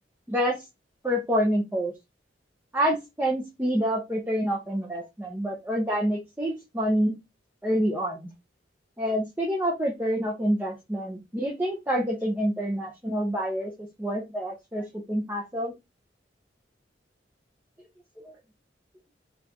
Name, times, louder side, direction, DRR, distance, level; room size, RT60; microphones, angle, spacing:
voice 1, 0.3-0.6 1.0-1.9 2.7-7.2 7.6-8.3 9.0-15.7 18.2-18.3, equal, 10° right, -1 dB, 0.6 m, -27 dB
4.1 x 2.4 x 2.8 m, 0.21 s
head